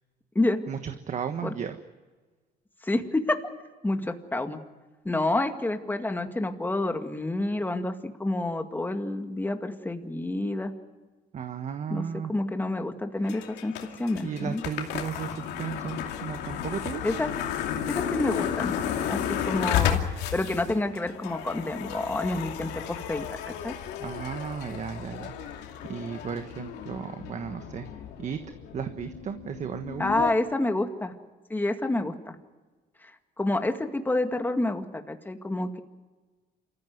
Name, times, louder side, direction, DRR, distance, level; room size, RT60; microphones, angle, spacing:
voice 1, 0.7-1.8 11.3-12.3 14.2-17.2 24.0-27.9 28.2-28.4 28.7-30.0, right 7 dB, 45° right, 8 dB, 1.4 m, -35 dB
voice 2, 2.8-3.4 3.8-4.6 5.0-10.7 11.9-14.6 17.0-17.3 17.9-18.7 19.1-23.7 30.0-31.1 31.5-32.4 33.0-33.1 33.4-35.8, left 2 dB, 10° left, 6 dB, 2.0 m, -28 dB
sound 1, 13.3-30.3, left 9 dB, 85° left, 2.7 m, -33 dB
27.5 x 15.0 x 9.5 m, 1.3 s
cardioid pair, 110°, 17 cm